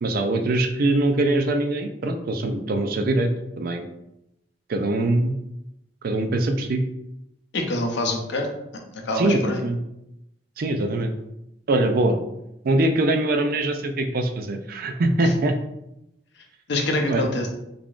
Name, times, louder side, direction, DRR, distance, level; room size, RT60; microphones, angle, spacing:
voice 1, 0.0-3.3 3.6-3.9 4.7-5.3 6.0-6.8 9.1-9.8 10.6-11.1 11.7-12.2 12.6-15.5 17.1-17.3, right 2 dB, 55° right, 6 dB, 0.4 m, -22 dB
voice 2, 7.5-8.5 8.9-9.6 15.2-15.3 16.7-17.5, left 1 dB, 70° left, 3 dB, 0.7 m, -25 dB
3.6 x 3.5 x 2.4 m, 0.85 s
head